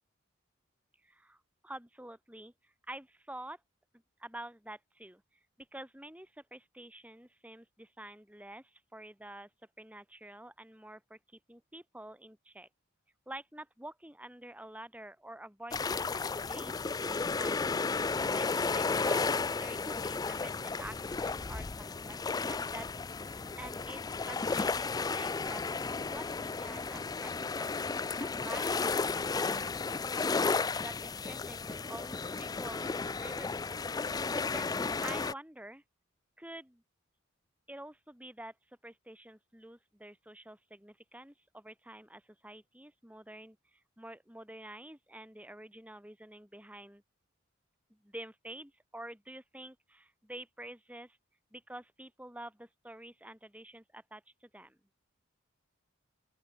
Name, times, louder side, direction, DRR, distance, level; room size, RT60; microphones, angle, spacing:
voice 1, 1.0-3.6 4.2-5.2 5.6-9.5 9.8-12.7 13.3-17.6 17.9-22.2 22.5-22.9 23.1-24.0 24.3-25.6 26.1-27.7 28.2-30.2 30.8-32.9 33.2-35.8 36.4-36.8 37.7-47.0 47.9-51.2 51.5-54.8, right 1 dB, 5° right, 3.0 m, -48 dB
sound 1, 15.7-35.3, left 4 dB, 20° left, 0.3 m, -33 dB
open air
head